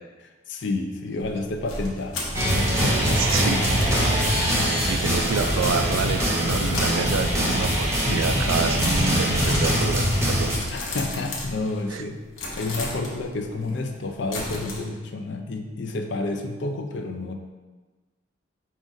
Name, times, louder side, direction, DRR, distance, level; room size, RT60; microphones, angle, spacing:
voice 1, 0.5-3.2 4.3-4.7 8.1-8.5 10.7-12.2 12.6-17.3, left 2 dB, 60° left, 5 dB, 0.4 m, -30 dB
sound 1, 1.2-6.3 6.6-7.9 8.2-8.5 8.8-12.0 12.3-14.8, left 2 dB, 80° left, 0.9 m, -35 dB
sound 2, 2.3-10.6, equal, 15° right, 0.7 m, -23 dB
voice 2, 3.2-3.7 4.5-10.1 10.3-10.5 11.9-12.0, right 5 dB, 85° right, 8 dB, 0.3 m, -28 dB
5.0 x 2.5 x 3.9 m, 1.3 s
head